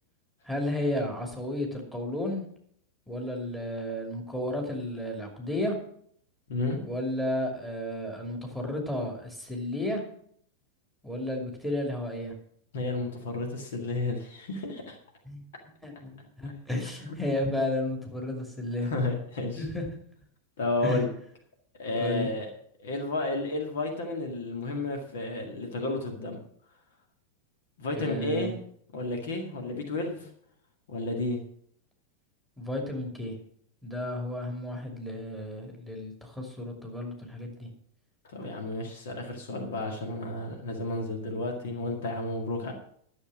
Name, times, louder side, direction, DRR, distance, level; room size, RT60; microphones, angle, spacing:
voice 1, 0.4-2.4 3.1-5.8 6.8-10.0 11.0-12.3 15.2-15.4 15.8-18.9 19.6-19.9 20.8-21.1 22.0-22.3 27.9-28.5 32.6-33.4 33.8-37.7, left 1 dB, 5° left, 1 dB, 2.6 m, -32 dB
voice 2, 6.5-6.8 12.7-15.0 17.1-17.2 18.8-19.6 20.6-21.1 21.7-22.5 22.8-26.4 27.8-28.6 28.9-30.3 30.9-31.4 38.3-42.7, left 2 dB, 60° left, 3 dB, 1.9 m, -32 dB
12.0 x 7.0 x 6.2 m, 0.64 s
figure-of-eight pair, 90°, 0 cm